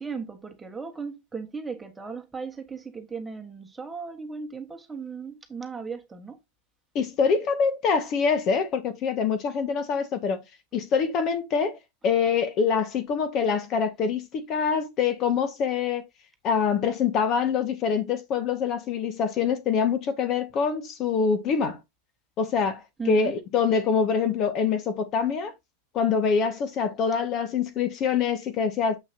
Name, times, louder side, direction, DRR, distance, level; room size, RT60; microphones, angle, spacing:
voice 1, 0.0-6.4 23.0-23.3, right 5 dB, 10° right, 1.5 m, -36 dB
voice 2, 7.0-10.4 10.7-11.8 12.0-16.0 16.4-21.8 22.4-22.8 23.1-25.5 25.9-29.0, left 6 dB, 40° left, 1.8 m, -25 dB
7.5 x 6.2 x 2.9 m
hypercardioid pair, 125°, 0 cm